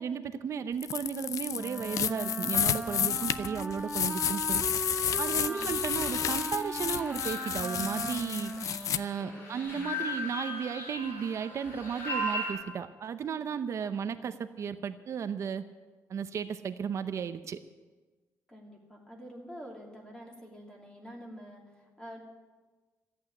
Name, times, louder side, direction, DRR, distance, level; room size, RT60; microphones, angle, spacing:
voice 1, 0.0-4.6 5.2-8.5 9.0-15.6 16.1-17.6, right 7 dB, 50° right, 11 dB, 0.7 m, -34 dB
sound 1, 0.8-9.0, left 9 dB, 60° left, 0.5 m, -31 dB
Wind instrument woodwind instrument, 1.5-9.8, right 2 dB, 10° right, 0.5 m, -38 dB
voice 2, 5.4-5.8 9.2-9.8 13.8-14.1 18.5-22.2, equal, 10° left, 0 dB, 2.7 m, -47 dB
sound 2, 5.5-12.5, left 1 dB, 40° left, 5.8 m, -38 dB
14.0 x 8.7 x 9.7 m, 1.3 s
cardioid pair, 145°, 6 cm